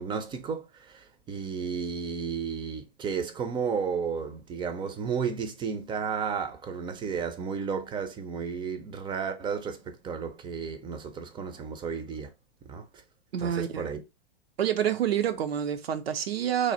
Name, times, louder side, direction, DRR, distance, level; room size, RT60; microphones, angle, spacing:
voice 1, 0.0-12.3 12.6-12.9 13.4-14.0, right 6 dB, 15° right, 0.5 m, -33 dB
voice 2, 13.3-13.9 14.6-16.7, right 9 dB, 80° right, 0.7 m, -27 dB
3.2 x 2.4 x 3.9 m
hypercardioid pair, 120°, 30 cm